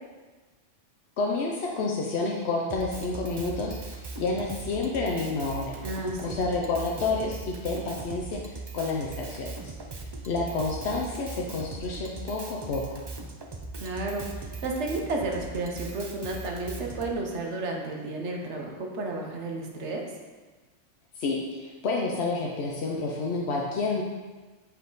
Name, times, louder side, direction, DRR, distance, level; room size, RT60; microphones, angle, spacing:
voice 1, 1.2-5.8 6.2-9.7 10.2-13.0 21.2-24.0, left 3 dB, 65° left, -1 dB, 0.9 m, -29 dB
Drum kit, 2.7-17.1, right 3 dB, 40° right, 0.3 m, -39 dB
voice 2, 5.8-6.4 13.8-20.0, right 2 dB, 70° right, 1 dB, 1.2 m, -32 dB
7.2 x 4.3 x 3.9 m, 1.3 s
omnidirectional pair, 1.2 m